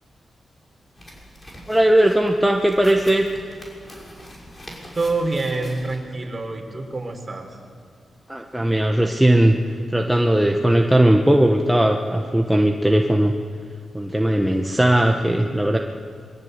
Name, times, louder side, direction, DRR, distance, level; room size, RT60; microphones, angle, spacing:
sound 1, 1.0-6.0, equal, 25° left, 5.8 m, -43 dB
voice 1, 1.7-3.3 8.3-9.6 9.9-13.3 13.9-15.8, right 1 dB, 5° right, 2 dB, 1.3 m, -18 dB
voice 2, 4.9-7.6, right 3 dB, 30° right, 3 dB, 4.3 m, -26 dB
26.5 x 22.5 x 8.3 m, 2.2 s
cardioid pair, 100°, 0 cm